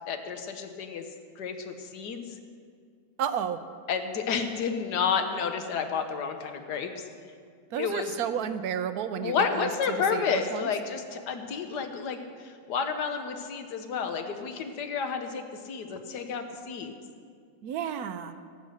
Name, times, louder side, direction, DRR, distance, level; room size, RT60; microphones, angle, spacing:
voice 1, 0.1-1.1 1.4-2.2 3.9-6.9 7.8-8.1 9.2-16.9, left 6 dB, 85° left, 6 dB, 1.6 m, -31 dB
voice 2, 3.2-3.6 7.7-10.7 17.6-18.4, right 8 dB, 70° right, 10 dB, 1.2 m, -32 dB
17.0 x 8.4 x 6.5 m, 2.2 s
omnidirectional pair, 1.7 m